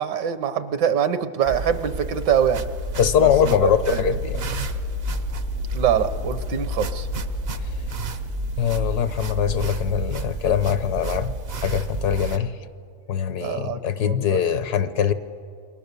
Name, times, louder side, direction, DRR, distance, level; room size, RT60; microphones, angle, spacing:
voice 1, 0.0-2.6 3.2-4.0 5.7-7.1 13.4-14.4, right 8 dB, 65° right, 12 dB, 1.5 m, -24 dB
sound 1, 1.5-12.4, right 4 dB, 50° right, 0.8 m, -31 dB
sound 2, 2.3-11.0, left 4 dB, 50° left, 0.8 m, -33 dB
voice 2, 3.0-4.4 8.6-12.6 13.1-15.1, left 8 dB, 65° left, 12 dB, 1.3 m, -22 dB
28.0 x 22.5 x 6.8 m, 2.4 s
omnidirectional pair, 2.0 m